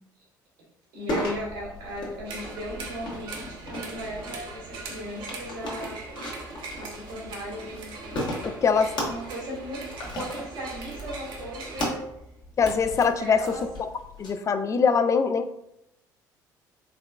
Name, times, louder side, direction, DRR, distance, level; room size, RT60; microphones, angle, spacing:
voice 1, 0.9-6.0 6.7-8.0 9.1-12.1 13.2-13.7, equal, 80° right, -4 dB, 1.3 m, -37 dB
sound 1, 1.1-14.3, equal, 45° left, 1.1 m, -37 dB
sound 2, 2.2-11.9, right 3 dB, 55° right, 0.7 m, -41 dB
voice 2, 8.4-8.9 12.6-13.9 14.2-15.5, left 5 dB, 30° left, 10 dB, 0.4 m, -23 dB
3.9 x 3.0 x 2.3 m, 0.81 s
hypercardioid pair, 55°, 10 cm